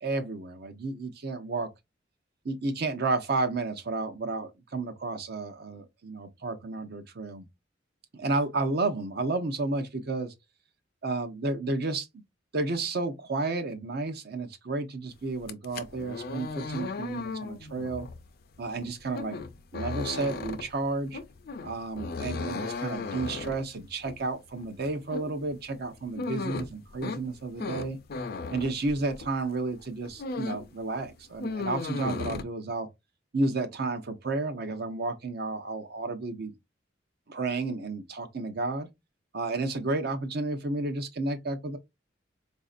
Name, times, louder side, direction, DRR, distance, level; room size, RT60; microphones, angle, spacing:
voice 1, 0.0-1.7 2.4-7.5 8.1-10.3 11.0-12.2 12.5-18.1 18.6-19.4 19.7-21.2 21.6-28.0 28.5-32.9 33.3-36.5 37.3-38.9 39.3-41.8, right 3 dB, 55° right, 0.7 m, -31 dB
sound 1, 15.4-29.4 29.8-30.8 31.0-32.4, left 4 dB, 55° left, 0.5 m, -36 dB
4.2 x 2.6 x 2.4 m
head